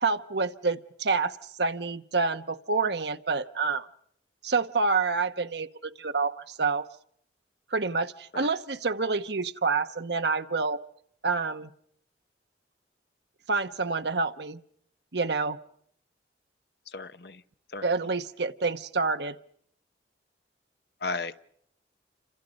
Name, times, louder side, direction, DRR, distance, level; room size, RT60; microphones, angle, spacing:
voice 1, 0.0-3.9 4.4-6.9 7.7-10.8 11.2-11.7 13.5-14.6 15.1-15.6 17.8-19.4, right 4 dB, 70° right, 10 dB, 1.1 m, -28 dB
voice 2, 16.9-17.4 17.7-17.8 21.0-21.4, left 3 dB, 60° left, 11 dB, 1.0 m, -34 dB
28.5 x 26.5 x 5.3 m, 0.68 s
head